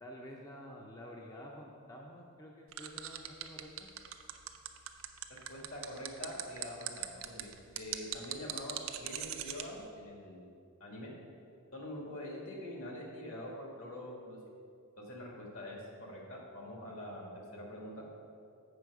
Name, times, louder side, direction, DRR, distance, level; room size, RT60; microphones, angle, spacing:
voice 1, 0.0-3.9, equal, 15° left, -2 dB, 0.5 m, -49 dB
sound 1, 2.7-9.6, right 12 dB, 65° right, 0.5 m, -40 dB
voice 2, 5.5-10.5 10.8-11.1 11.7-14.4 15.0-18.0, left 1 dB, 70° left, -2 dB, 1.8 m, -45 dB
7.7 x 5.9 x 4.7 m, 2.5 s
head